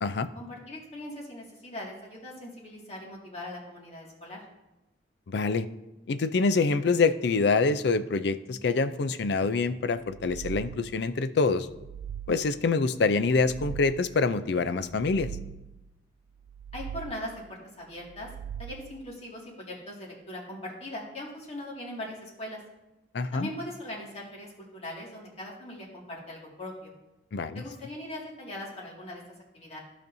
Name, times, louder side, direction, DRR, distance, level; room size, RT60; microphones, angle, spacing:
voice 1, 0.3-4.4 16.7-18.3 18.6-22.6 23.3-26.9 27.5-29.2 29.5-29.8, left 1 dB, 35° left, -3 dB, 2.1 m, -40 dB
voice 2, 5.3-5.7 6.1-11.7 12.3-15.3 23.1-23.5 27.3-27.6, left 4 dB, 65° left, 12 dB, 0.5 m, -26 dB
sound 1, 10.0-11.1 11.6-12.7 13.2-14.3 14.8-15.9 16.4-17.5 18.0-19.1, right 9 dB, 50° right, 0.3 m, -42 dB
15.0 x 5.2 x 2.7 m, 0.98 s
head